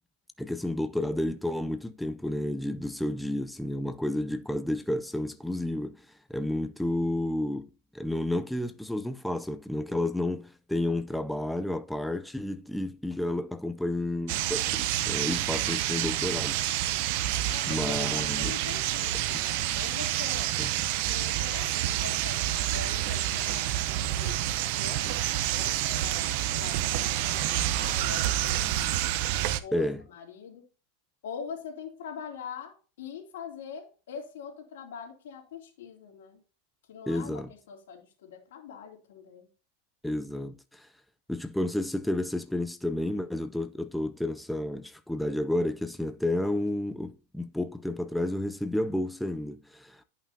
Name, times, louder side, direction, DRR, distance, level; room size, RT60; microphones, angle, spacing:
voice 1, 0.4-7.7 7.9-16.6 17.6-18.5 19.1-19.4 20.6-20.7 29.7-30.0 37.1-37.5 40.0-40.9 41.3-50.0, left 1 dB, ahead, 0.4 m, -31 dB
sound 1, 14.3-29.6, right 13 dB, 50° right, 0.6 m, -28 dB
voice 2, 17.5-24.4 24.7-25.2 25.5-28.8 29.3-30.6 31.2-36.4 36.9-39.5, left 6 dB, 80° left, 2.8 m, -43 dB
10.5 x 5.7 x 2.7 m
supercardioid pair, 155°, 0 cm